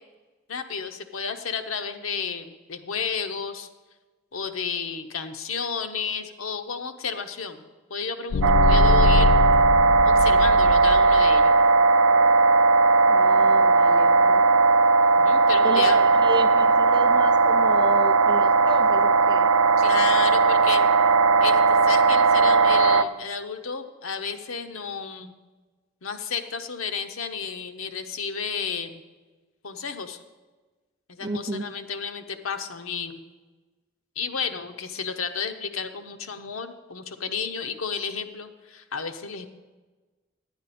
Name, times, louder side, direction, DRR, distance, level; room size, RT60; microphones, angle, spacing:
voice 1, 0.5-3.7 4.3-7.6 7.9-9.3 10.0-11.5 15.0-16.0 19.8-20.8 21.4-25.3 26.0-29.0 29.6-30.2 31.1-33.2 34.2-39.6, left 6 dB, 90° left, 7 dB, 0.8 m, -32 dB
sound 1, 8.3-11.4, left 3 dB, 65° left, 0.3 m, -23 dB
sound 2, 8.4-23.0, right 4 dB, 85° right, 0.4 m, -18 dB
voice 2, 13.1-14.4 15.6-19.5 31.2-31.7, right 2 dB, 20° right, 9 dB, 0.4 m, -32 dB
10.5 x 9.6 x 4.2 m, 1.3 s
head